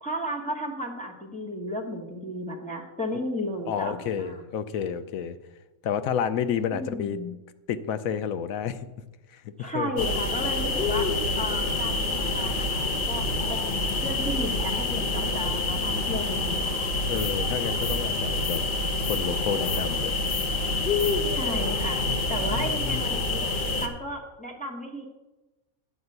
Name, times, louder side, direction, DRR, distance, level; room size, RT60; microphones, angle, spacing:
voice 1, 0.0-4.4 6.7-7.3 9.6-11.1 11.4-16.6 21.3-22.0 22.3-23.4 23.8-25.1, equal, 5° left, -1 dB, 1.2 m, -34 dB
voice 2, 3.7-5.4 5.8-7.2 7.7-8.9 9.3-9.9 17.1-18.6 19.1-20.1 22.0-22.2 22.5-23.1, left 8 dB, 75° left, 11 dB, 1.0 m, -30 dB
sound 1, 10.0-23.9, left 2 dB, 45° left, 0.9 m, -27 dB
9.6 x 4.8 x 7.9 m, 1.1 s
omnidirectional pair, 1.5 m